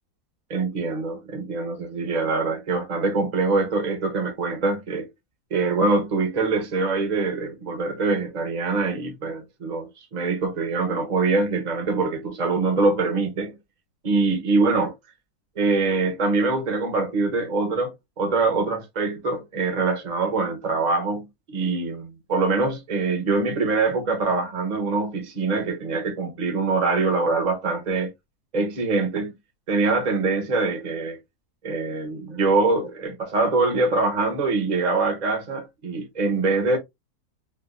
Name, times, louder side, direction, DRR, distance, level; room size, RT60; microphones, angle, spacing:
voice 1, 0.5-5.1 5.5-13.5 14.0-14.9 15.6-28.1 28.5-29.3 29.7-31.2 31.6-36.8, right 3 dB, 35° right, 0.9 m, -24 dB
4.1 x 2.5 x 2.5 m
omnidirectional pair, 1.7 m